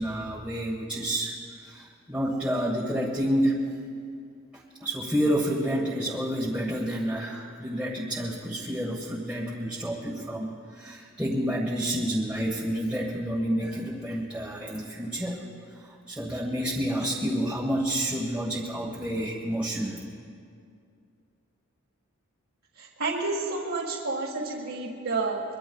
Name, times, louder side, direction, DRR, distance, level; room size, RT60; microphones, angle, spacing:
voice 1, 0.0-3.7 4.5-15.4 15.7-20.0, equal, 5° right, -6 dB, 1.3 m, -29 dB
voice 2, 22.8-25.4, right 3 dB, 65° right, -4 dB, 1.8 m, -30 dB
23.0 x 23.0 x 2.3 m, 2.3 s
head